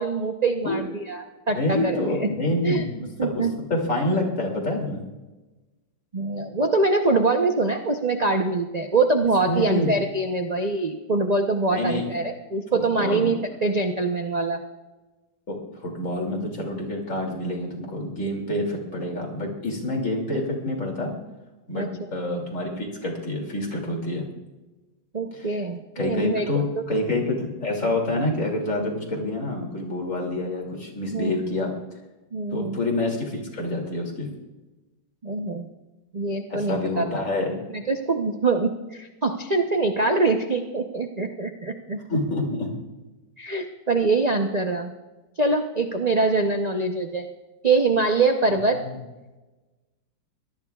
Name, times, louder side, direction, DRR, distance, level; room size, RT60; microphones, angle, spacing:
voice 1, 0.0-2.3 2.6-2.8 3.2-3.5 6.1-14.6 21.7-21.9 25.1-26.4 31.1-31.3 32.3-32.8 35.2-35.7 36.1-37.0 37.7-42.0 43.4-44.9 45.4-47.3 47.6-48.8, right 3 dB, 45° right, 4 dB, 0.5 m, -24 dB
voice 2, 1.5-5.1 9.5-9.9 11.7-12.1 12.7-13.3 15.5-21.1 21.7-24.3 25.3-25.5 26.0-31.7 32.5-34.3 36.5-37.6 42.1-42.7 48.5-49.0, left 1 dB, 45° left, 0 dB, 3.1 m, -27 dB
23.5 x 18.5 x 2.4 m, 1.1 s
omnidirectional pair, 2.0 m